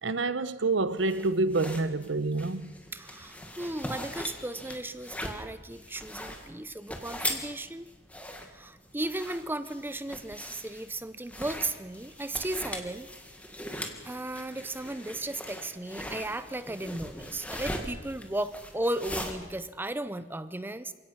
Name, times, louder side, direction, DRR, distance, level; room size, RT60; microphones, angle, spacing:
voice 1, 0.0-2.7, right 3 dB, 85° right, 0.9 m, -27 dB
sound 1, 1.0-19.3, left 1 dB, 10° left, 1.9 m, -40 dB
voice 2, 2.9-7.9 8.5-13.1 14.0-20.9, right 1 dB, 10° right, 0.6 m, -35 dB
28.0 x 17.0 x 5.9 m
head